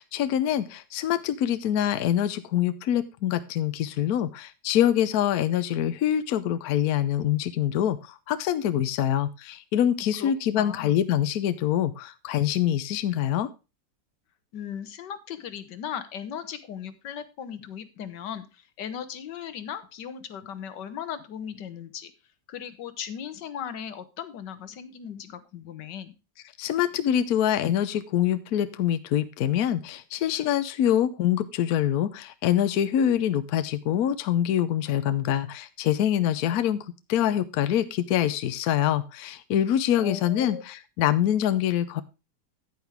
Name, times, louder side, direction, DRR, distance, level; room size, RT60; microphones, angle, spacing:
voice 1, 0.0-13.5 26.6-42.0, left 10 dB, 65° left, 13 dB, 1.1 m, -25 dB
voice 2, 10.2-10.9 14.5-22.1 22.5-26.1 40.0-40.6, left 8 dB, 85° left, 12 dB, 1.6 m, -37 dB
9.4 x 9.2 x 3.4 m, 0.28 s
omnidirectional pair, 1.8 m